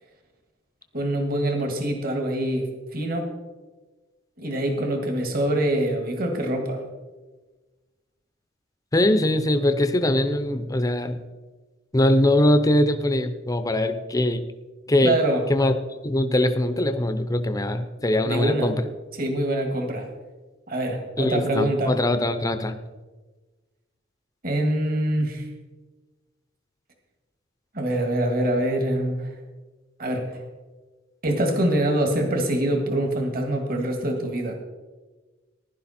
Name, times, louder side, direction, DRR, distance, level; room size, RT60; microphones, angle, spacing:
voice 1, 0.9-3.3 4.4-6.8 15.0-15.4 18.2-18.7 19.2-20.1 20.7-21.9 24.4-25.5 27.7-29.3 30.0-30.4 31.2-34.5, right 1 dB, 50° right, 4 dB, 2.0 m, -24 dB
voice 2, 8.9-11.2 11.9-14.4 14.9-15.2 15.5-15.7 16.0-18.8 21.2-22.8, left 1 dB, 20° left, 9 dB, 0.7 m, -22 dB
15.5 x 11.0 x 4.3 m, 1.3 s
head